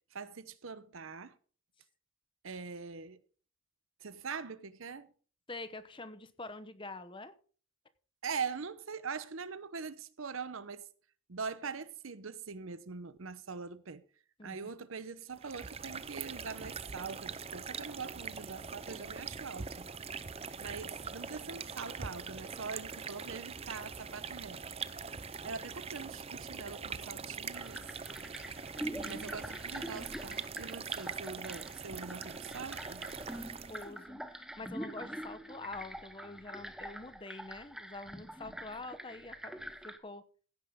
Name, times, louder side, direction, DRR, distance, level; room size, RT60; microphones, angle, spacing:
voice 1, 0.1-1.3 2.4-3.2 4.0-5.1 8.2-10.8 11.3-14.0 14.4-19.9 20.6-24.6 25.4-27.8 29.0-33.0, right 5 dB, 75° right, 0.9 m, -43 dB
voice 2, 5.5-7.3 14.4-14.6 28.8-29.4 33.7-40.2, left 2 dB, 25° left, 0.9 m, -46 dB
sound 1, 15.3-34.0, right 5 dB, 30° right, 0.6 m, -43 dB
sound 2, 15.6-33.8, left 2 dB, 75° left, 4.7 m, -63 dB
sound 3, 27.5-40.0, right 1 dB, 5° right, 0.9 m, -45 dB
15.5 x 9.8 x 3.7 m
head